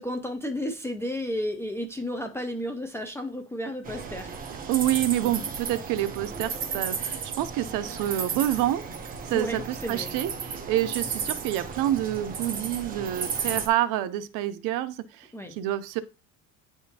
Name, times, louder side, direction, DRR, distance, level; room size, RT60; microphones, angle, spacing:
voice 1, 0.0-4.3 9.3-10.1 15.3-15.5, left 1 dB, 10° left, 0.3 m, -32 dB
sound 1, 3.8-13.7, right 6 dB, 25° right, 0.7 m, -34 dB
voice 2, 4.7-8.8 9.2-16.0, right 13 dB, 65° right, 0.6 m, -28 dB
9.5 x 3.6 x 2.8 m
cardioid pair, 165°, 35 cm